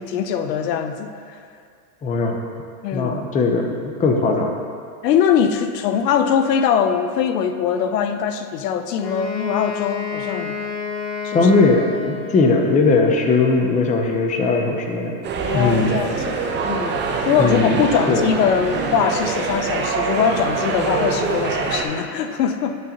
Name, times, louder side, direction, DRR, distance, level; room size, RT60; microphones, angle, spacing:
voice 1, 0.0-1.4 2.8-3.2 5.0-10.6 11.2-11.5 15.4-16.4 16.7-17.0 17.3-22.8, left 7 dB, 80° left, 8 dB, 0.7 m, -22 dB
voice 2, 2.0-2.4 2.9-4.5 11.3-15.1 15.5-16.0 17.4-17.8 18.1-18.2, left 3 dB, 15° left, 3 dB, 0.6 m, -19 dB
Wind instrument woodwind instrument, 9.0-12.7, left 5 dB, 50° left, 1.4 m, -29 dB
sound 1, 15.2-21.8, right 4 dB, 20° right, 0.7 m, -24 dB
10.5 x 6.5 x 2.9 m, 2.2 s
hypercardioid pair, 115°, 48 cm